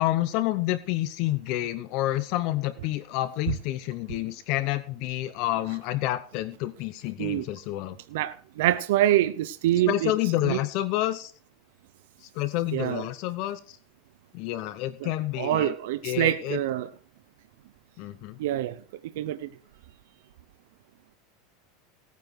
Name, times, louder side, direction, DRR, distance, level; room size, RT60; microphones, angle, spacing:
voice 1, 0.0-8.0 9.9-11.3 12.2-13.8 14.3-15.7 16.0-16.6 18.0-18.4, left 15 dB, 50° left, 0.8 m, -29 dB
voice 2, 8.1-10.1 10.4-10.6 12.7-13.0 15.0-15.1 15.4-16.9 18.4-18.8 19.2-19.5, right 13 dB, 75° right, 0.7 m, -25 dB
17.5 x 9.4 x 4.7 m
supercardioid pair, 155°, 0 cm